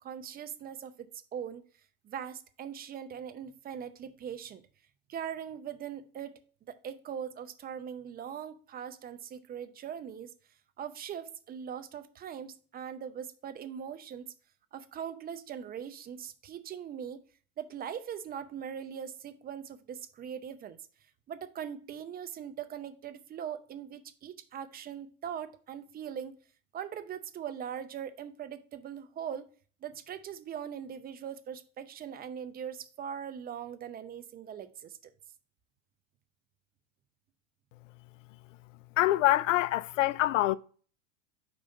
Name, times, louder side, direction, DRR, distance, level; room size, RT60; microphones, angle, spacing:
voice 1, 0.0-1.6 2.0-4.6 5.1-6.4 6.7-10.3 10.8-14.3 14.7-17.2 17.6-20.8 21.3-26.4 26.7-29.5 29.8-35.1, right 8 dB, 25° right, 0.6 m, -41 dB
voice 2, 39.0-40.6, left 15 dB, 85° left, 0.5 m, -25 dB
5.5 x 5.0 x 4.4 m
hypercardioid pair, 110°, 37 cm